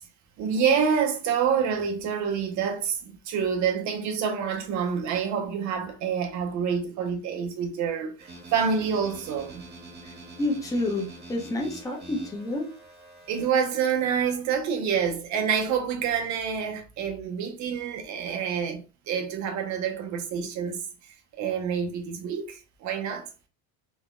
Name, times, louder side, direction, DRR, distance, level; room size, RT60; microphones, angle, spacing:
voice 1, 0.4-9.6 13.3-23.3, right 7 dB, 35° right, 0.6 m, -27 dB
sound 1, 8.2-13.5, right 2 dB, 20° right, 1.0 m, -45 dB
voice 2, 10.0-12.7, left 2 dB, 5° left, 0.6 m, -29 dB
3.8 x 2.8 x 2.4 m
cardioid pair, 155°, 49 cm